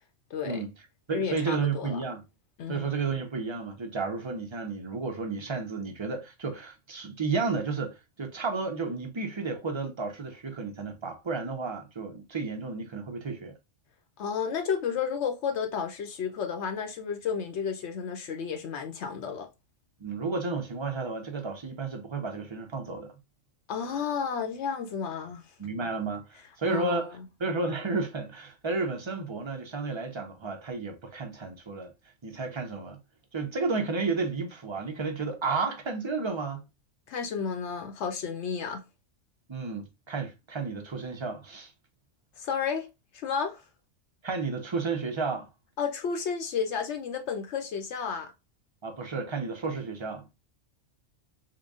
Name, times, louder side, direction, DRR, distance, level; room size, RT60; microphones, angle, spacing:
voice 1, 0.3-0.6 1.1-2.0 2.6-2.9 14.2-19.5 23.7-25.4 26.7-27.1 37.1-38.8 42.4-42.9 43.1-43.6 45.8-48.3, left 6 dB, 70° left, 0.8 m, -32 dB
voice 2, 1.1-2.2 2.7-13.5 20.0-23.1 25.6-31.9 32.2-33.0 33.3-36.7 39.5-41.7 44.2-45.5 48.8-50.3, right 4 dB, 30° right, 0.6 m, -32 dB
3.8 x 2.2 x 3.4 m
omnidirectional pair, 1.2 m